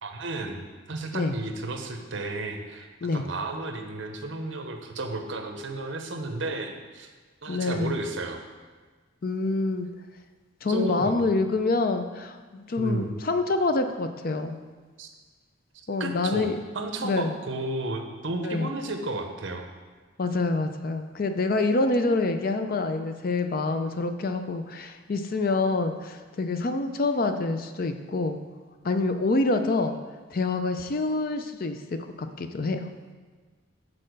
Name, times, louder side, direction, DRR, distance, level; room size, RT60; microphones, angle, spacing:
voice 1, 0.0-0.6 0.9-7.1 7.4-8.4 10.7-11.2 12.8-13.1 15.0-15.1 16.0-16.5 16.7-19.7, right 2 dB, 60° right, 5 dB, 0.8 m, -33 dB
voice 2, 7.5-8.0 9.2-9.9 10.6-14.6 15.9-16.6 17.0-17.3 18.4-18.7 20.2-28.4 28.8-29.9 30.3-32.9, left 3 dB, 45° left, 7 dB, 0.4 m, -26 dB
6.5 x 4.2 x 6.5 m, 1.4 s
head